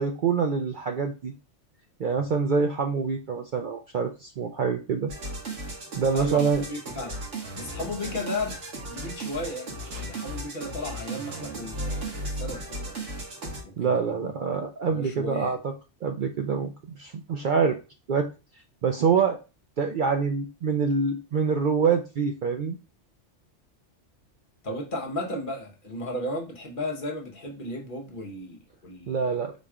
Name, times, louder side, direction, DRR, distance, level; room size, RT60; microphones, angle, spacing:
voice 1, 0.0-1.3 2.0-5.1 6.0-6.6 13.8-15.7 16.0-17.8 18.1-18.3 18.8-19.4 19.8-22.8 29.1-29.5, right 5 dB, 60° right, 0.5 m, -25 dB
sound 1, 5.1-13.6, right 1 dB, 85° right, 1.6 m, -35 dB
voice 2, 6.1-7.2 7.5-13.2 13.6-14.3 14.9-15.6 24.6-29.3, left 1 dB, 50° left, 0.9 m, -35 dB
4.2 x 2.2 x 4.7 m
omnidirectional pair, 1.2 m